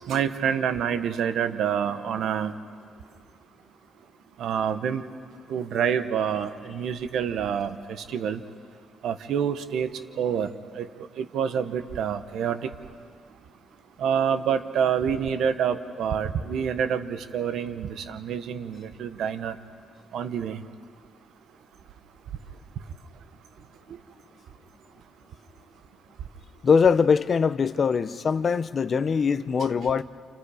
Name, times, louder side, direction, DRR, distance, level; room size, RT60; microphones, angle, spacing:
voice 1, 0.1-2.5 4.4-5.0 5.5-7.7 8.1-8.4 9.0-9.9 10.2-10.5 10.8-10.9 11.2-12.6 14.0-19.5 20.1-20.6, right 8 dB, 75° right, 1.1 m, -27 dB
voice 2, 26.6-30.0, left 6 dB, 45° left, 0.7 m, -22 dB
29.5 x 28.5 x 5.0 m
cardioid pair, 110°, 0 cm